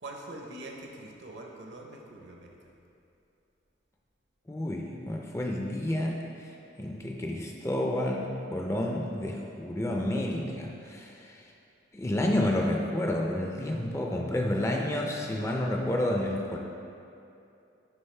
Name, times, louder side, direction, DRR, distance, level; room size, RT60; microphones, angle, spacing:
voice 1, 0.0-2.6, right 2 dB, 65° right, 1 dB, 0.8 m, -43 dB
voice 2, 4.5-6.2 6.8-11.4 11.9-16.6, left 1 dB, 15° left, 0 dB, 0.4 m, -30 dB
11.0 x 3.9 x 3.3 m, 2.7 s
head